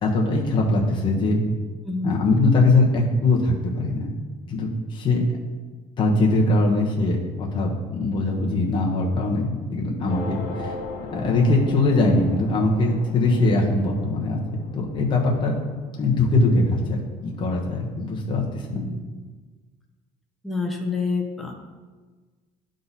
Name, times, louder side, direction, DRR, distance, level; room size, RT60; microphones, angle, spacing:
voice 1, 0.0-1.4 2.0-4.1 4.5-5.2 6.0-10.7 11.1-14.4 14.7-15.5 16.0-18.8, left 2 dB, 35° left, -2 dB, 1.2 m, -21 dB
voice 2, 1.8-2.2 18.7-19.0 20.4-21.7, left 3 dB, ahead, 1 dB, 0.6 m, -28 dB
sound 1, 10.1-16.9, left 3 dB, 80° left, 1.2 m, -38 dB
11.5 x 3.9 x 4.1 m, 1.4 s
cardioid pair, 155°, 15 cm